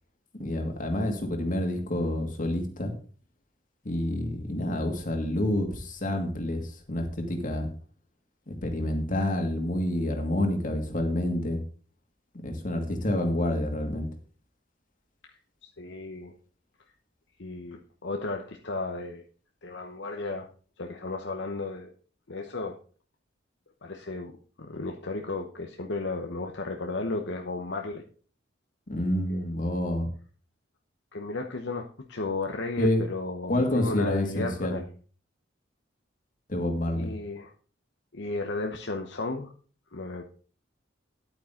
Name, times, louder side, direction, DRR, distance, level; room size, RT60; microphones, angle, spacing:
voice 1, 0.4-2.9 3.8-7.7 8.5-11.6 12.4-14.1 28.9-30.1 32.8-33.0 33.5-34.8 36.5-37.1, left 1 dB, 45° left, 4 dB, 2.3 m, -28 dB
voice 2, 15.2-16.3 17.4-19.2 19.6-20.5 20.8-21.9 22.3-22.8 23.8-24.3 24.6-28.0 29.3-29.4 31.1-34.8 36.9-37.5 38.1-39.5 39.9-40.2, left 3 dB, 65° left, 3 dB, 1.0 m, -34 dB
11.5 x 8.8 x 3.8 m, 0.41 s
head